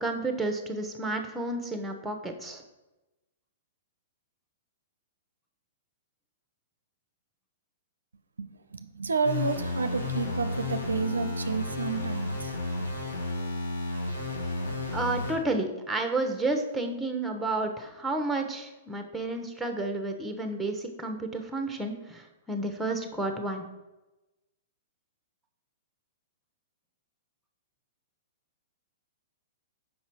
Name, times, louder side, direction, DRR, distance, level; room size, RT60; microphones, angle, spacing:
voice 1, 0.0-2.6 14.9-23.6, right 2 dB, 5° right, 5 dB, 0.9 m, -31 dB
voice 2, 8.4-12.6, right 5 dB, 80° right, 10 dB, 0.4 m, -31 dB
sound 1, 9.2-15.3, left 2 dB, 80° left, 2.2 m, -32 dB
5.5 x 5.2 x 4.6 m, 1.0 s
figure-of-eight pair, 115°, 0 cm